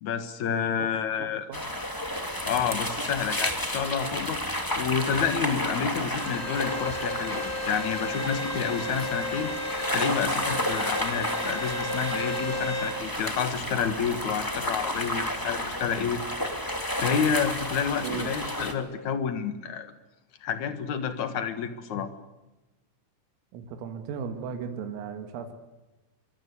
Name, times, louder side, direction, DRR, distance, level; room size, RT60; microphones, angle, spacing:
voice 1, 0.0-1.5 2.4-4.4 4.8-9.5 9.9-16.2 17.0-19.9 20.4-22.1, left 7 dB, 65° left, 10 dB, 1.9 m, -29 dB
voice 2, 1.2-1.6 18.0-18.3 23.5-25.5, right 7 dB, 85° right, 6 dB, 4.7 m, -36 dB
sound 1, 1.5-18.7, left 1 dB, 35° left, 0.3 m, -31 dB
Bowed string instrument, 6.0-13.0, left 1 dB, 10° left, 3.0 m, -34 dB
24.5 x 24.0 x 8.4 m, 1.1 s
omnidirectional pair, 5.9 m